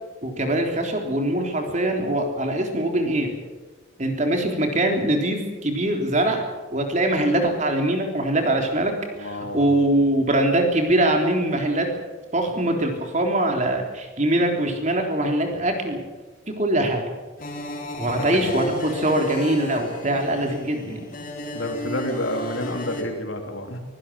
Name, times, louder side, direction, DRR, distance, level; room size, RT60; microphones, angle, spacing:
voice 1, 0.2-3.3 4.0-6.4 6.7-8.9 9.2-11.9 12.3-16.0 16.5-17.0 18.0-21.0, right 1 dB, 35° right, 3 dB, 3.6 m, -22 dB
voice 2, 9.2-9.6 18.1-18.7 21.5-23.8, left 1 dB, 70° left, 3 dB, 3.8 m, -29 dB
sound 1, 17.4-23.0, left 1 dB, 40° left, 4.0 m, -33 dB
23.0 x 17.5 x 7.6 m, 1.2 s
head